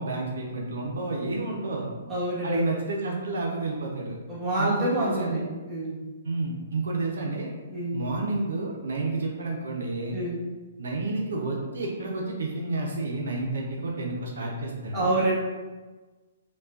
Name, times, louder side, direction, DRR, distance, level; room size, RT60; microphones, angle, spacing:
voice 1, 0.0-1.9 2.4-4.2 4.6-5.4 6.2-7.5 7.9-10.2 10.8-15.1, right 2 dB, 80° right, -1 dB, 0.7 m, -30 dB
voice 2, 2.1-2.6 4.3-5.4 5.7-6.0 7.7-8.0 10.1-10.4 14.9-15.3, right 1 dB, 15° right, -9 dB, 1.4 m, -27 dB
5.3 x 2.3 x 2.5 m, 1.3 s
hypercardioid pair, 145°, 0 cm